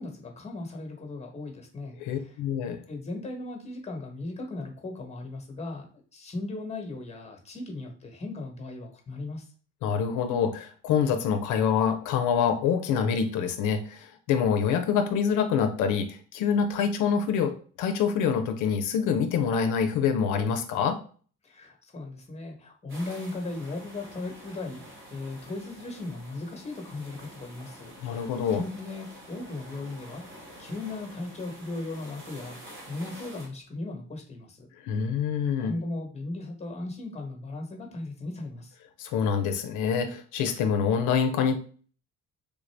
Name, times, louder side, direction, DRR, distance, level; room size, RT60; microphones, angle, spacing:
voice 1, 0.0-2.4 2.9-5.9 6.1-9.5 21.4-30.2 30.6-34.7 35.6-38.7, left 2 dB, 20° left, 3 dB, 1.1 m, -37 dB
voice 2, 2.0-2.8 9.8-21.0 28.0-28.6 34.8-35.7 39.0-41.6, left 7 dB, 90° left, 6 dB, 0.5 m, -26 dB
sound 1, 22.9-33.5, right 1 dB, 40° right, 1.3 m, -48 dB
3.3 x 2.5 x 3.3 m, 0.43 s
cardioid pair, 90°, 30 cm